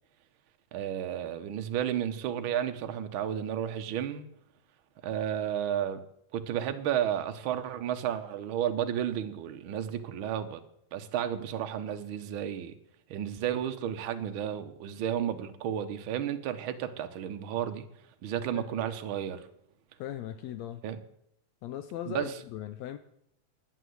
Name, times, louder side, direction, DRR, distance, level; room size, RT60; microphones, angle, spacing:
voice 1, 0.7-4.3 5.0-6.0 6.3-10.6 10.9-12.7 13.1-17.9 18.2-19.5 20.8-21.0 22.1-22.3, right 10 dB, 65° right, 1.3 m, -32 dB
voice 2, 18.5-18.8 20.0-20.8 21.6-23.0, left 10 dB, 75° left, 1.7 m, -39 dB
11.0 x 9.1 x 7.8 m
omnidirectional pair, 3.4 m